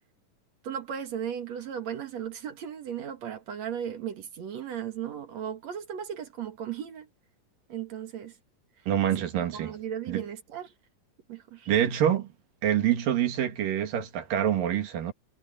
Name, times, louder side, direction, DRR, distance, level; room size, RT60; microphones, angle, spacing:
voice 1, 0.6-7.1 7.7-8.3 9.5-10.7 11.3-11.7, right 9 dB, 60° right, 2.7 m, -36 dB
voice 2, 8.9-9.8 10.1-10.2 11.7-12.3 12.6-15.1, right 10 dB, 90° right, 3.6 m, -26 dB
omnidirectional pair, 3.8 m